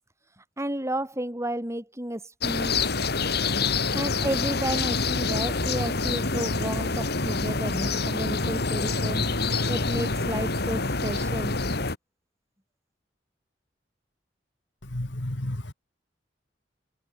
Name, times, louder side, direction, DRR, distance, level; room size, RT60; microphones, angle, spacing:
voice 1, 0.6-2.8 3.9-9.2 9.7-11.6, right 1 dB, 15° right, 7.2 m, -32 dB
sound 1, 2.4-12.0, left 3 dB, 60° left, 2.7 m, -26 dB
voice 2, 14.9-15.7, left 1 dB, 80° left, 2.3 m, -31 dB
head